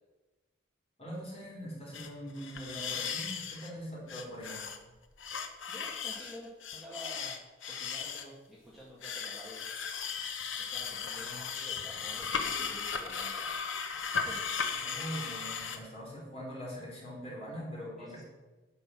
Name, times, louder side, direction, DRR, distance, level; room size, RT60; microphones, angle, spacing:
voice 1, 1.0-4.6 11.2-11.5 14.7-18.2, equal, 30° left, -4 dB, 3.8 m, -42 dB
sound 1, 1.9-2.1 2.4-3.7 4.1-4.8 5.2-8.3 9.0-15.8, left 6 dB, 80° left, 1.1 m, -36 dB
voice 2, 5.7-9.7 10.6-13.6 13.9-14.8 18.0-18.2, left 1 dB, ahead, -7 dB, 2.1 m, -49 dB
11.0 x 5.3 x 7.7 m, 1.2 s
head